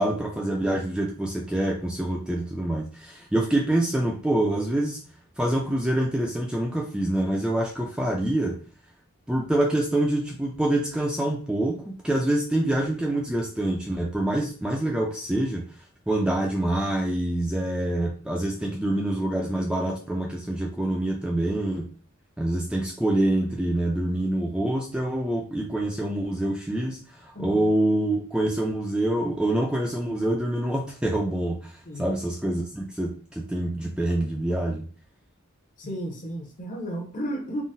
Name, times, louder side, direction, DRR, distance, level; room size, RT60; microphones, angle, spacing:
voice 1, 0.0-5.0 5.4-8.6 9.3-15.6 16.1-21.9 22.4-31.7 32.0-34.9, right 1 dB, 5° right, -1 dB, 0.3 m, -26 dB
voice 2, 27.3-27.7 31.8-32.1 35.8-37.6, equal, 40° left, 2 dB, 0.7 m, -33 dB
3.7 x 2.0 x 2.6 m, 0.41 s
head